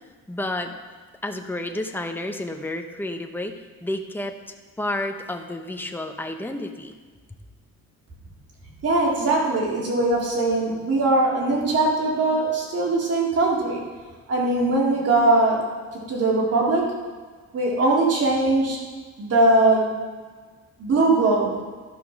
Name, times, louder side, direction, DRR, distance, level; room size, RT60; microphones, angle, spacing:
voice 1, 0.3-0.8 1.2-4.3 4.8-6.9, left 1 dB, 5° left, 4 dB, 1.0 m, -30 dB
voice 2, 8.8-13.8 14.3-15.6 16.1-17.0 17.5-18.8 19.2-19.9 20.8-21.5, right 2 dB, 55° right, -4 dB, 3.8 m, -20 dB
12.5 x 5.8 x 6.1 m, 1.5 s
cardioid pair, 90°, 30 cm